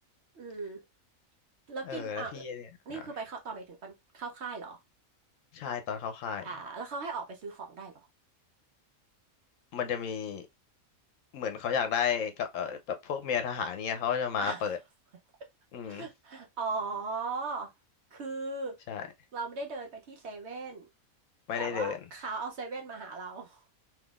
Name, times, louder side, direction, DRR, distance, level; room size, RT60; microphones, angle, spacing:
voice 1, 0.3-0.8 1.7-2.4 2.9-4.8 6.4-8.1 14.4-14.7 15.8-17.7 18.1-18.8 19.3-20.9 21.6-23.6, right 4 dB, 55° right, 1.0 m, -38 dB
voice 2, 1.9-3.0 5.5-6.4 9.7-10.4 11.3-14.8 15.7-16.0 18.9-19.0 21.5-22.0, left 7 dB, 70° left, 1.0 m, -32 dB
3.6 x 3.0 x 2.4 m
omnidirectional pair, 1.5 m